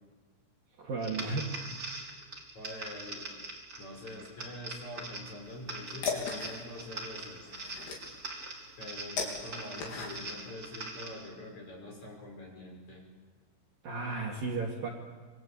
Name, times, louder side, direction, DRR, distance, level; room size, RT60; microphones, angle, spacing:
voice 1, 0.8-1.7 13.8-14.9, right 3 dB, 50° right, -1 dB, 3.5 m, -34 dB
sound 1, 1.0-11.3, right 2 dB, 20° right, 3.7 m, -43 dB
voice 2, 2.5-3.3 3.8-7.5 8.8-13.1, left 1 dB, 35° left, 0 dB, 6.4 m, -45 dB
sound 2, 5.5-10.5, left 5 dB, 55° left, 5.4 m, -38 dB
27.0 x 24.0 x 8.6 m, 1.4 s
omnidirectional pair, 5.9 m